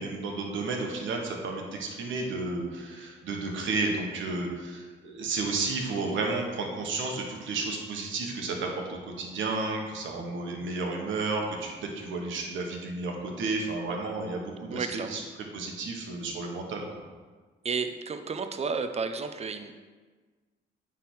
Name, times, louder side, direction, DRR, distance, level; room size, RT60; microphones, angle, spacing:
voice 1, 0.0-15.2 15.5-17.0, right 3 dB, 75° right, 1 dB, 1.4 m, -32 dB
voice 2, 14.7-15.2 17.6-19.7, right 5 dB, 30° right, 8 dB, 0.6 m, -32 dB
9.1 x 3.6 x 4.6 m, 1.4 s
cardioid pair, 90°, 20 cm